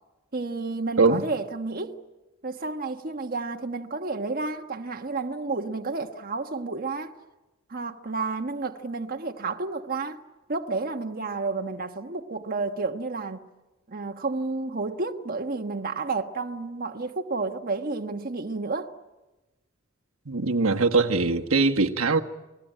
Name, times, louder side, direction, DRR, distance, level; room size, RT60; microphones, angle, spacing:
voice 1, 0.3-2.0 2.4-7.1 7.7-10.2 10.5-13.4 13.9-18.9, right 3 dB, 45° right, 1.3 m, -31 dB
voice 2, 20.3-22.2, right 3 dB, 90° right, 1.5 m, -21 dB
29.0 x 20.5 x 9.1 m
head